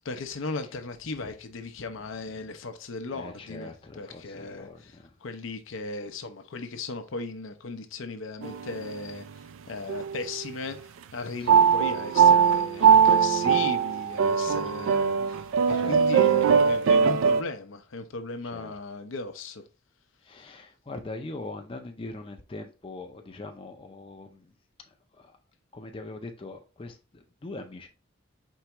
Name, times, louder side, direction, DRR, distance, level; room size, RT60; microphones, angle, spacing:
voice 1, 0.0-3.7 4.0-9.3 9.7-19.6 20.3-20.5, left 3 dB, 75° left, 0.6 m, -37 dB
voice 2, 3.1-5.1 11.4-11.8 12.8-13.1 14.4-14.7 15.8-16.4 18.5-18.8 20.2-24.5 24.9-25.4 25.7-27.9, left 2 dB, 25° left, 0.5 m, -42 dB
sound 1, 8.4-9.2 9.9-10.5 11.5-17.4, right 7 dB, 80° right, 0.3 m, -21 dB
4.6 x 3.4 x 2.9 m
head